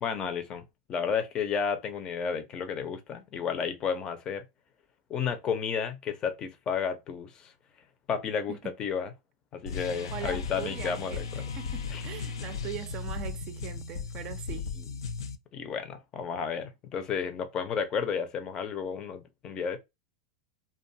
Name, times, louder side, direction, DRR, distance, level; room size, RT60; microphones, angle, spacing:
voice 1, 0.0-4.4 5.1-7.5 8.1-9.1 9.5-11.5 11.9-12.0 14.8-14.9 15.5-19.8, left 6 dB, 30° left, 0.6 m, -32 dB
sound 1, 9.7-15.4, left 5 dB, 85° left, 0.4 m, -36 dB
voice 2, 9.7-11.3 11.5-14.7, right 10 dB, 45° right, 0.4 m, -41 dB
2.5 x 2.3 x 2.5 m
hypercardioid pair, 110°, 3 cm